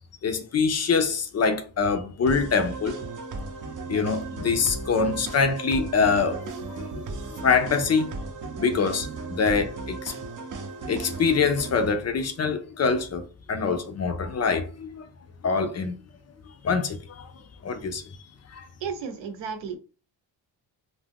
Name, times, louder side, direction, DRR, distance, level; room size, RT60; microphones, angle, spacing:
voice 1, 0.2-3.0 3.9-6.8 7.4-8.1 8.6-10.1 10.9-13.2 13.5-15.0 15.4-15.9 16.6-17.3 17.6-18.0 18.5-18.6, left 5 dB, 40° left, 0.4 m, -24 dB
sound 1, 2.3-11.9, right 3 dB, 45° right, 0.6 m, -36 dB
voice 2, 18.8-19.8, right 6 dB, 80° right, 0.8 m, -33 dB
2.4 x 2.1 x 3.4 m
cardioid pair, 105°, 44 cm